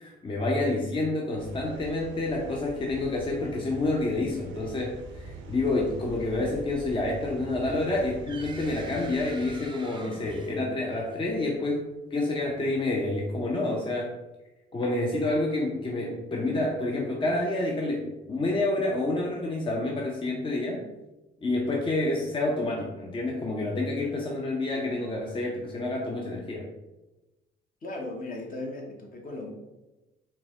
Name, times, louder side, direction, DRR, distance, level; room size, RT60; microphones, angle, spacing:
voice 1, 0.0-14.2 14.7-20.9 21.4-26.7, left 2 dB, 25° left, -1 dB, 0.6 m, -28 dB
sound 1, 1.4-9.6, right 3 dB, 80° right, 0.6 m, -43 dB
sound 2, 7.8-11.4, right 3 dB, 25° right, 0.6 m, -45 dB
voice 2, 27.8-29.5, left 2 dB, 45° left, 1 dB, 0.9 m, -37 dB
4.6 x 2.1 x 3.6 m, 1.0 s
cardioid pair, 90°, 20 cm